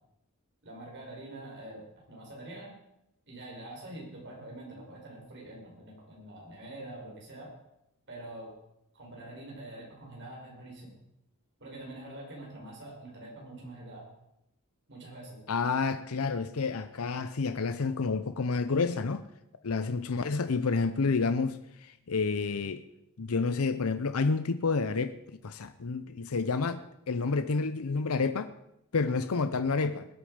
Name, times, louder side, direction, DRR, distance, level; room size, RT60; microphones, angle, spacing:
voice 1, 0.6-2.7 3.3-7.5 8.1-8.5 8.9-11.0 11.6-14.1 14.9-15.4, right 1 dB, 55° right, -2 dB, 5.5 m, -45 dB
voice 2, 15.5-19.2 19.6-22.8 23.2-25.2 25.4-26.8 27.1-28.5 28.9-30.1, left 4 dB, 80° left, 11 dB, 0.7 m, -29 dB
21.0 x 8.7 x 5.1 m, 0.80 s
head